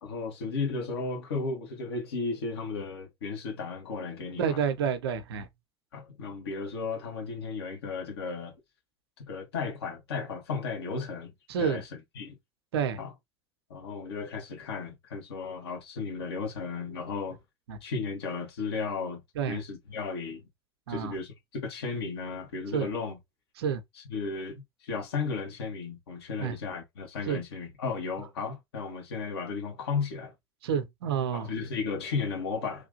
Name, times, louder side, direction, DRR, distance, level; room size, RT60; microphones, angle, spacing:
voice 1, 0.0-4.6 5.9-8.6 9.2-11.9 12.1-12.4 13.0-13.1 13.7-17.4 17.8-20.4 20.9-23.2 24.1-30.3 31.3-32.9, left 4 dB, 75° left, 1.2 m, -34 dB
voice 2, 4.4-5.5 11.5-11.8 12.7-13.0 17.7-17.8 19.4-19.6 20.9-21.2 22.7-22.9 23.6-23.8 26.4-26.5 27.3-27.4 30.6-31.5, right 7 dB, 75° right, 0.6 m, -29 dB
3.1 x 2.4 x 2.6 m
figure-of-eight pair, 65°, 13 cm